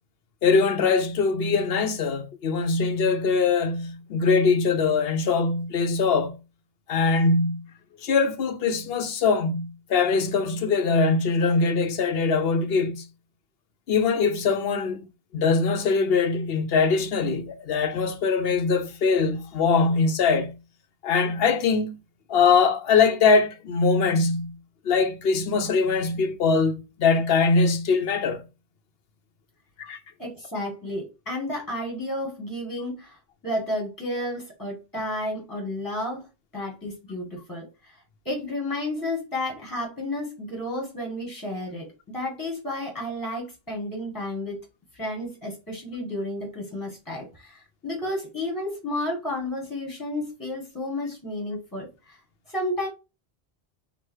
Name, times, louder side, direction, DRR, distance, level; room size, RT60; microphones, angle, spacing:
voice 1, 0.4-6.3 6.9-7.6 8.0-13.0 13.9-15.1 15.3-20.5 21.0-21.9 22.3-24.5 24.8-28.4 29.8-30.0, left 4 dB, 70° left, 0.9 m, -22 dB
voice 2, 30.2-36.3 36.5-44.6 44.9-52.2 52.5-52.9, left 1 dB, 20° left, 1.6 m, -32 dB
4.8 x 2.4 x 4.5 m
omnidirectional pair, 1.0 m